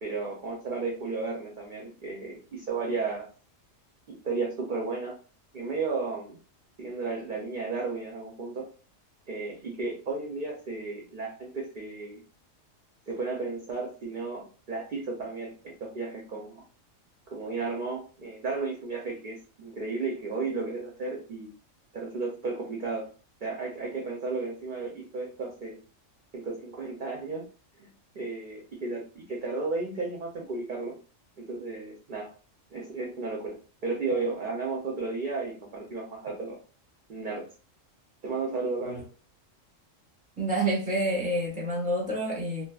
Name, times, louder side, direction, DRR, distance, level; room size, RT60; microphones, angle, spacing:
voice 1, 0.0-3.3 4.1-5.2 5.5-6.4 6.8-8.7 9.3-12.2 13.1-16.6 17.3-21.5 21.9-23.1 23.4-25.8 26.3-27.5 27.8-27.9 28.1-31.0 31.4-32.3 32.7-36.6 37.1-37.5 38.2-39.0, right 3 dB, 55° right, 0 dB, 0.6 m, -33 dB
voice 2, 40.4-42.7, right 1 dB, 5° right, -3 dB, 0.8 m, -28 dB
2.7 x 2.3 x 2.3 m, 0.37 s
omnidirectional pair, 1.3 m